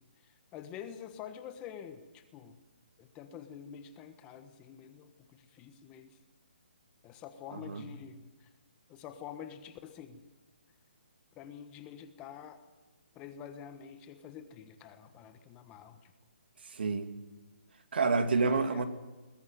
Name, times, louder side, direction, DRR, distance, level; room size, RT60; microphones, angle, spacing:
voice 1, 0.0-2.6 3.0-6.2 7.0-8.5 8.9-10.2 11.4-12.6 13.1-16.1 18.4-18.8, left 8 dB, 15° left, 9 dB, 1.2 m, -47 dB
voice 2, 16.7-17.1 17.9-18.8, right 4 dB, 65° right, 8 dB, 2.6 m, -28 dB
20.5 x 20.5 x 9.3 m, 1.2 s
hypercardioid pair, 165°, 6 cm